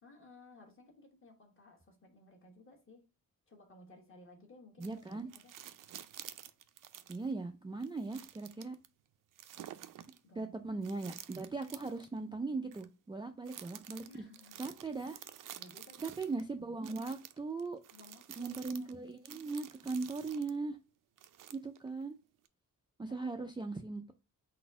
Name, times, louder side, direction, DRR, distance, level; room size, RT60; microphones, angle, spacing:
voice 1, 0.0-3.1 3.5-5.6 10.2-10.9 14.1-14.7 15.6-16.2 17.9-18.9 23.1-23.4, left 2 dB, 40° left, 1.4 m, -58 dB
voice 2, 4.8-5.3 7.1-8.8 10.4-14.2 14.6-15.2 16.0-17.8 18.4-20.8 21.5-22.2 23.0-24.1, right 3 dB, 15° right, 0.3 m, -39 dB
sound 1, 4.8-7.3 7.8-8.9 9.4-10.2 10.8-12.1 12.7-12.8 13.5-16.4 16.8-20.6 21.2-21.9 22.5-22.6, right 11 dB, 70° right, 0.5 m, -51 dB
4.0 x 2.6 x 4.7 m
wide cardioid pair, 150°, 33 cm